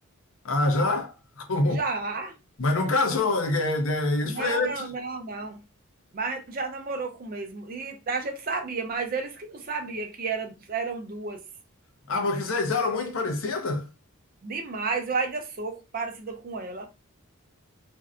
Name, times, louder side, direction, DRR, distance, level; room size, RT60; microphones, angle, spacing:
voice 1, 0.4-1.8 2.6-4.9 12.1-13.9, left 2 dB, 65° left, 0.6 m, -25 dB
voice 2, 1.7-2.4 4.2-5.6 6.1-11.4 14.4-16.9, right 4 dB, 40° right, 0.5 m, -32 dB
2.6 x 2.1 x 2.4 m
head